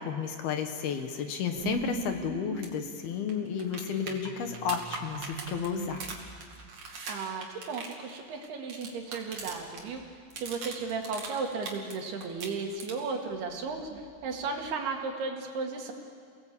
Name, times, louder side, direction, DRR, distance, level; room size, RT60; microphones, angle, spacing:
voice 1, 0.0-6.0, left 7 dB, 70° left, 6 dB, 2.9 m, -32 dB
sound 1, 1.5-6.7 9.4-10.1 10.4-10.8 13.3-14.7, right 7 dB, 80° right, 4.2 m, -42 dB
sound 2, 2.6-2.7 3.0-3.1 3.3-9.8 10.1-12.0 12.2-13.2 15.2-15.3, right 4 dB, 45° right, 3.4 m, -41 dB
voice 2, 7.1-10.0 10.4-15.9, right 4 dB, 65° right, 2 dB, 3.9 m, -35 dB
29.0 x 18.5 x 8.4 m, 2.2 s
omnidirectional pair, 5.1 m